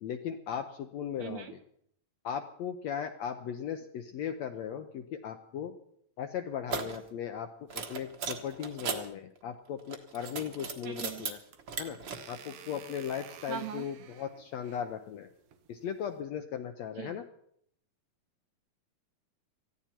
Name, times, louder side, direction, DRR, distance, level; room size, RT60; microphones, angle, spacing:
voice 1, 0.0-1.6 2.2-5.8 6.2-11.4 11.8-15.3 15.7-17.2, left 8 dB, 75° left, 7 dB, 1.7 m, -37 dB
voice 2, 1.2-1.5 10.8-11.3 13.5-13.9 17.0-17.1, right 10 dB, 70° right, 6 dB, 1.8 m, -40 dB
sound 1, 6.7-7.0 7.7-9.0 9.8-11.3 11.6-12.1, right 5 dB, 50° right, 1.5 m, -36 dB
sound 2, 11.2-16.2, right 9 dB, 90° right, 3.0 m, -53 dB
19.5 x 14.5 x 4.4 m, 0.68 s
omnidirectional pair, 4.0 m